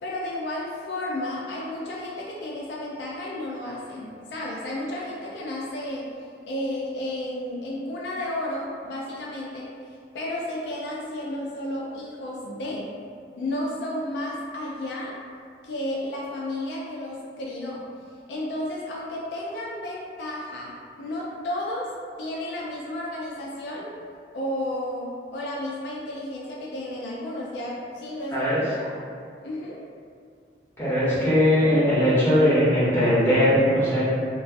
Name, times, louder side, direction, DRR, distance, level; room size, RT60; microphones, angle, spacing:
voice 1, 0.0-6.1 6.5-12.9 13.4-15.1 15.6-17.9 18.3-20.7 21.0-21.9 22.2-23.9 24.3-28.5 28.8-28.9 29.4-29.8, left 1 dB, 70° left, -4 dB, 0.3 m, -32 dB
voice 2, 30.8-34.0, equal, 15° left, -11 dB, 0.9 m, -20 dB
2.3 x 2.3 x 2.4 m, 2.3 s
head